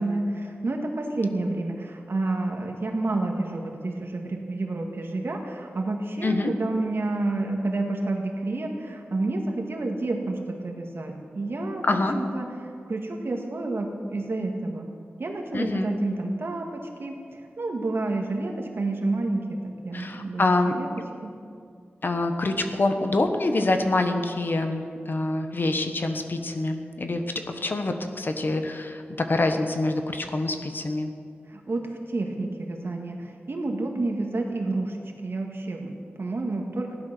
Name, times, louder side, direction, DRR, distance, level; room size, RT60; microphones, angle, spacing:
voice 1, 0.0-14.9 15.2-20.9 21.2-21.3 31.5-35.0 35.2-36.9, right 2 dB, 60° right, 2 dB, 1.9 m, -29 dB
voice 2, 11.8-12.2 15.5-15.9 19.9-20.8 22.0-31.1, left 2 dB, 50° left, 6 dB, 1.2 m, -26 dB
16.0 x 11.0 x 6.2 m, 2.3 s
wide cardioid pair, 105°, 4 cm